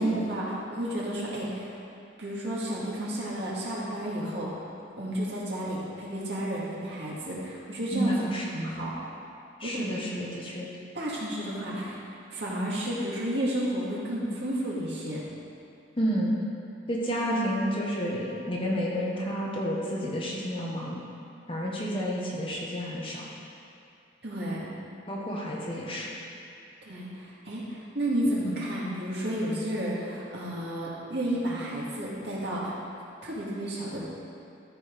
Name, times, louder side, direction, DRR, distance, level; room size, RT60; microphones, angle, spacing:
voice 1, 0.0-1.7 2.2-4.5 5.0-8.1 8.5-8.9 9.6-9.8 10.9-12.0 12.3-15.2 24.2-24.7 26.8-32.8 33.2-34.0, right 1 dB, 65° right, -6 dB, 2.1 m, -31 dB
voice 2, 7.9-8.4 9.6-10.7 16.0-16.4 16.9-21.0 21.5-23.3 25.1-26.1, equal, 30° left, -4 dB, 1.2 m, -30 dB
13.5 x 4.7 x 5.2 m, 2.6 s
head